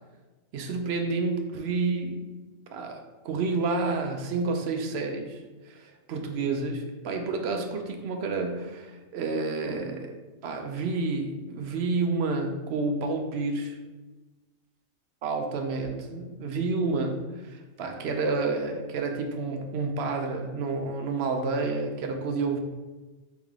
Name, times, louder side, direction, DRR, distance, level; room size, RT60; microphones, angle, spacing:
voice 1, 0.5-2.3 2.7-10.1 10.4-13.8 15.2-22.6, right 3 dB, 60° right, 4 dB, 0.8 m, -29 dB
4.3 x 3.5 x 3.5 m, 1.2 s
omnidirectional pair, 1.4 m